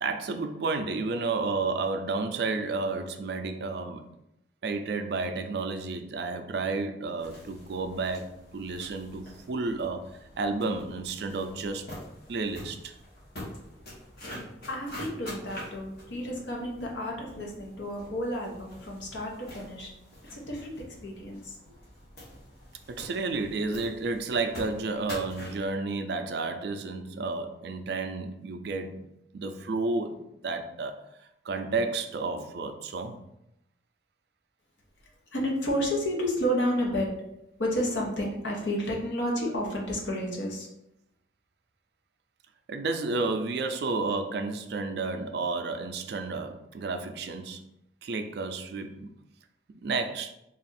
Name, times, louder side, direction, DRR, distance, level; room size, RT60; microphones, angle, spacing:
voice 1, 0.0-4.1 4.6-11.9 12.3-12.9 22.9-29.1 29.3-31.0 31.4-33.2 42.7-47.6 48.0-49.1 49.7-50.3, right 3 dB, 60° right, 0.4 m, -31 dB
sound 1, 7.2-25.7, left 1 dB, 55° left, 1.2 m, -46 dB
voice 2, 14.7-19.9 20.3-21.6 35.3-37.1 37.6-40.7, equal, 75° left, 1.0 m, -31 dB
3.4 x 2.4 x 4.0 m
head